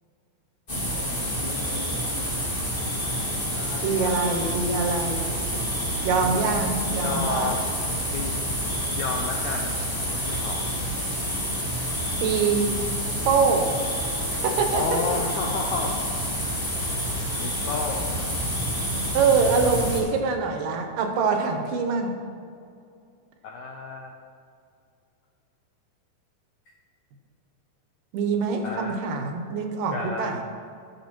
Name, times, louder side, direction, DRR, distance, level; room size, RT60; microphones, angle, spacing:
sound 1, 0.7-20.0, equal, 20° left, 1.4 m, -28 dB
voice 1, 1.4-2.0 3.5-4.2 6.2-7.6 8.1-8.4 8.9-9.8 10.1-10.6 14.7-16.0 16.4-16.6 17.1-18.2 23.4-24.1 28.6-29.0 29.9-30.4, left 4 dB, 80° left, 1 dB, 1.7 m, -32 dB
voice 2, 3.8-5.2 6.0-7.6 12.2-12.8 13.3-13.8 14.3-15.0 19.1-22.1 28.1-30.4, right 5 dB, 75° right, 4 dB, 2.3 m, -24 dB
17.5 x 6.1 x 2.9 m, 2.4 s
omnidirectional pair, 4.1 m